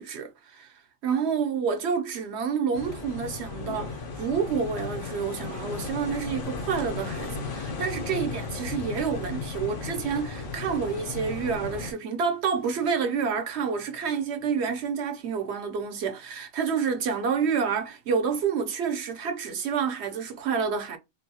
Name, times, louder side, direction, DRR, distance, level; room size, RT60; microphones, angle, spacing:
voice 1, 0.0-21.0, right 6 dB, 65° right, 1.0 m, -29 dB
sound 1, 2.7-11.9, left 4 dB, 80° left, 1.1 m, -35 dB
3.6 x 2.3 x 2.8 m
omnidirectional pair, 1.3 m